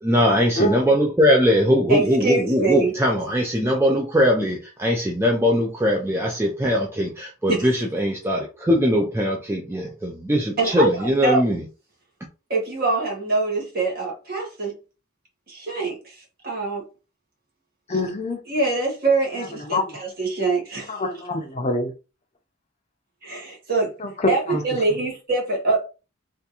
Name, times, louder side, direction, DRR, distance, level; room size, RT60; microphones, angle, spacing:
voice 1, 0.0-11.6, equal, 10° right, 0.5 m, -21 dB
voice 2, 0.6-0.9 17.9-18.4 19.7-19.9 20.9-21.9 24.0-24.1 24.5-24.6, left 1 dB, 35° left, 0.6 m, -25 dB
voice 3, 1.9-2.9 7.5-7.7 10.6-11.4 12.5-14.7 15.5-16.2 16.4-16.8 17.9-18.0 18.5-20.9 23.2-23.9 24.3-25.8, right 3 dB, 50° right, 1.4 m, -24 dB
3.5 x 2.5 x 2.8 m
head